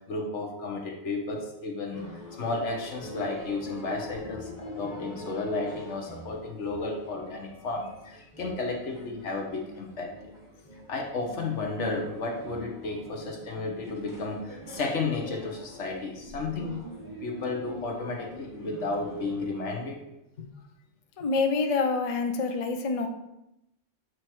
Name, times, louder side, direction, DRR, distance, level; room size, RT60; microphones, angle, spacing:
voice 1, 0.0-2.1 2.3-10.3 10.9-16.8 17.2-20.0 20.4-20.5, left 3 dB, 70° left, 2 dB, 1.4 m, -33 dB
sound 1, 1.9-19.5, equal, 15° left, 1.1 m, -44 dB
voice 2, 21.2-23.1, left 4 dB, 45° left, 5 dB, 0.5 m, -26 dB
8.1 x 3.1 x 4.5 m, 0.87 s
omnidirectional pair, 1.3 m